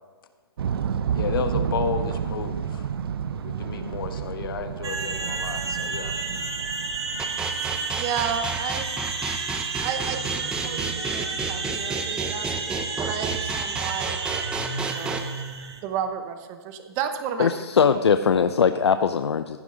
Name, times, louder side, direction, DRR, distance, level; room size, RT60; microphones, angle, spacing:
sound 1, 0.6-8.6, right 8 dB, 65° right, 0.7 m, -31 dB
voice 1, 1.1-2.9 3.4-6.2, left 6 dB, 60° left, 7 dB, 1.3 m, -32 dB
sound 2, 4.8-15.8, right 4 dB, 80° right, 1.6 m, -31 dB
sound 3, 7.2-15.2, right 4 dB, 5° right, 0.6 m, -31 dB
voice 2, 8.0-8.9 9.8-14.2 14.5-14.7 14.9-15.3 15.8-17.5, right 8 dB, 25° right, 8 dB, 0.9 m, -32 dB
voice 3, 17.4-19.6, left 6 dB, 85° left, 10 dB, 0.6 m, -20 dB
15.5 x 9.7 x 3.9 m, 1.4 s
hypercardioid pair, 155°, 14 cm